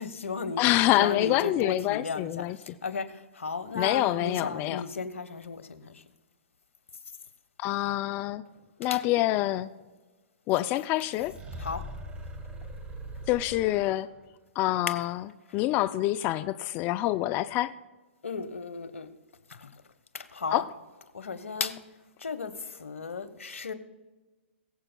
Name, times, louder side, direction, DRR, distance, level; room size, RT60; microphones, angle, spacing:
voice 1, 0.0-6.0 8.9-9.0 11.6-11.8 14.9-15.0 18.2-19.1 19.5-19.7 20.1-20.6 21.1-21.8 22.2-23.7, left 4 dB, 85° left, 1.1 m, -35 dB
voice 2, 0.6-2.6 3.7-4.8 7.6-8.4 8.8-9.7 10.5-11.3 13.3-14.1 14.6-15.3 15.5-17.7 20.5-20.7, left 15 dB, 25° left, 0.3 m, -26 dB
sound 1, 11.2-14.2, right 1 dB, 15° right, 1.4 m, -41 dB
22.5 x 7.9 x 2.2 m
hypercardioid pair, 135°, 7 cm